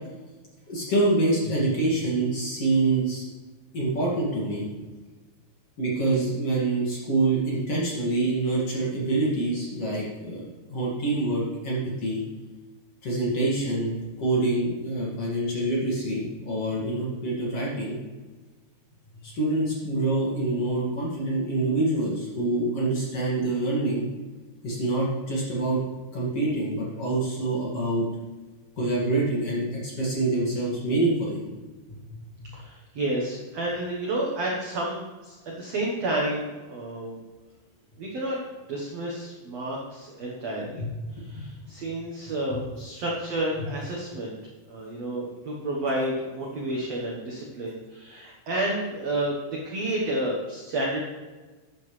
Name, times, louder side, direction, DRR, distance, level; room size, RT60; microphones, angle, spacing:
voice 1, 0.7-3.3 3.7-4.7 5.8-12.2 13.0-18.0 19.3-24.0 24.6-25.8 26.1-28.1 28.8-31.4 32.4-32.5 40.8-40.9 41.2-41.4, right 2 dB, 45° left, -5 dB, 2.5 m, -26 dB
voice 2, 32.5-37.2 38.0-38.4 38.7-40.8 41.1-44.4 44.7-49.3 49.6-51.0, right 1 dB, 85° right, -2 dB, 1.4 m, -30 dB
12.0 x 9.3 x 3.3 m, 1.3 s
omnidirectional pair, 5.0 m